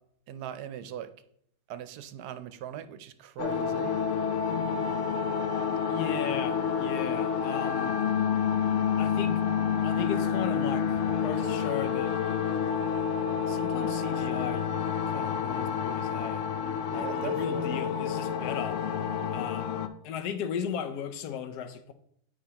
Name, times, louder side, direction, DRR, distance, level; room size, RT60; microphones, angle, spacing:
voice 1, 0.3-1.1 1.7-4.0 16.9-17.8, right 10 dB, 85° right, 1.2 m, -40 dB
sound 1, 3.4-19.9, left 7 dB, 65° left, 0.8 m, -29 dB
voice 2, 5.9-8.0 9.0-9.4 9.8-12.1 13.4-14.7 15.1-16.5 16.9-18.8 19.3-19.8 20.0-21.9, left 8 dB, 80° left, 1.2 m, -36 dB
9.3 x 4.8 x 2.8 m
omnidirectional pair, 1.7 m